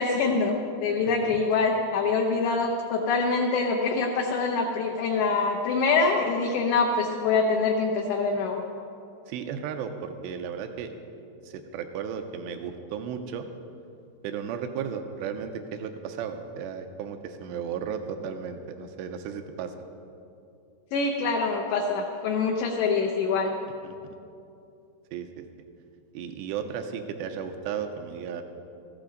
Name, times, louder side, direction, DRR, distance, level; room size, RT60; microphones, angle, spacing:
voice 1, 0.0-8.6 20.9-23.6, left 4 dB, 75° left, 0 dB, 2.8 m, -25 dB
voice 2, 1.0-1.4 9.3-10.9 11.4-13.5 14.2-19.7 23.8-24.0 25.1-25.5 26.1-28.4, right 7 dB, 85° right, 7 dB, 2.6 m, -34 dB
17.0 x 15.0 x 3.9 m, 2.6 s
omnidirectional pair, 5.7 m